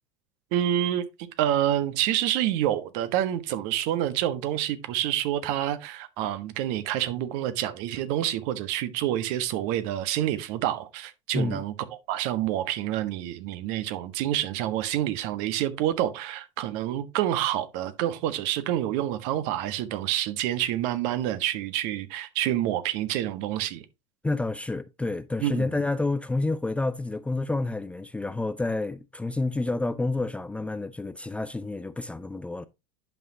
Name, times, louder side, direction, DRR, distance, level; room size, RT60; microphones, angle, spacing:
voice 1, 0.5-11.7 12.1-23.8 25.4-25.7, right 12 dB, 55° right, 1.4 m, -28 dB
voice 2, 24.2-32.7, left 2 dB, 5° left, 0.5 m, -29 dB
11.0 x 6.0 x 2.8 m
figure-of-eight pair, 85°, 16 cm